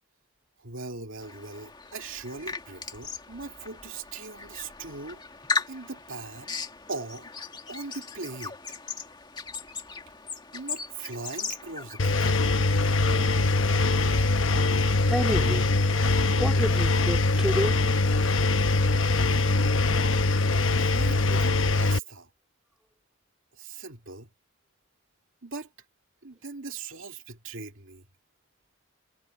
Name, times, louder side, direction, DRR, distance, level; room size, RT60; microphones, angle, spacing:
voice 1, 0.6-5.2 5.7-6.6 6.9-7.3 7.7-8.6 10.5-12.5 20.8-22.3 23.5-24.3 25.4-25.7 26.2-28.0, right 3 dB, 70° right, 2.4 m, -40 dB
sound 1, 1.2-16.8, left 4 dB, 20° left, 2.2 m, -39 dB
Engine, 12.0-22.0, left 3 dB, 70° left, 1.0 m, -23 dB
voice 2, 15.1-15.7 16.4-17.8, equal, 5° right, 3.3 m, -29 dB
head